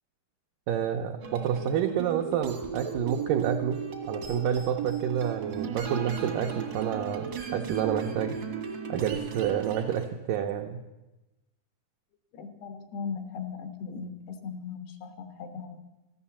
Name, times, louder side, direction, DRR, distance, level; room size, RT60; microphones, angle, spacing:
voice 1, 0.7-3.8 4.1-8.4 8.9-10.8, right 9 dB, 90° right, 4 dB, 1.9 m, -29 dB
sound 1, 1.2-10.1, right 6 dB, 70° right, 1.1 m, -35 dB
voice 2, 12.3-15.8, left 6 dB, 85° left, 8 dB, 3.3 m, -38 dB
14.5 x 10.5 x 7.1 m, 1.0 s
omnidirectional pair, 4.6 m